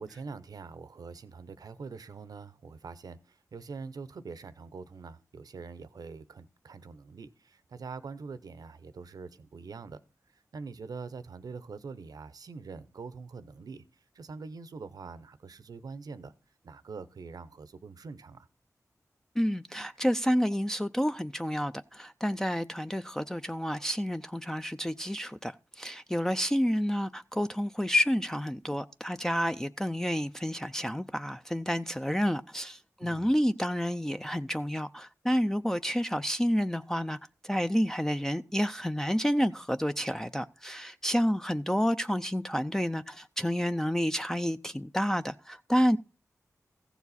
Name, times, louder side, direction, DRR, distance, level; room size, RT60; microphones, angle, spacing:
voice 1, 0.0-10.0 10.3-13.8 14.1-16.3 16.6-18.5 33.0-33.3, right 4 dB, 85° right, 0.7 m, -44 dB
voice 2, 19.4-37.2 37.4-46.0, equal, 5° left, 0.4 m, -29 dB
15.0 x 7.1 x 4.1 m
wide cardioid pair, 60°, 6 cm